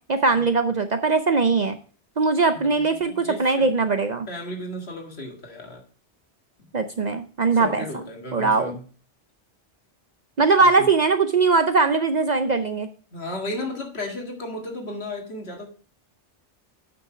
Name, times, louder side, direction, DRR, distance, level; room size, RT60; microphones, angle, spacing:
voice 1, 0.1-1.8 2.2-4.3 6.7-7.8 8.3-8.8 10.4-12.9, right 4 dB, 45° right, 0.6 m, -20 dB
voice 2, 2.6-3.8 4.3-5.8 6.6-6.7 7.5-8.8 10.8-10.9 13.1-15.7, left 1 dB, 65° left, 2.1 m, -34 dB
8.7 x 5.8 x 4.9 m
omnidirectional pair, 1.2 m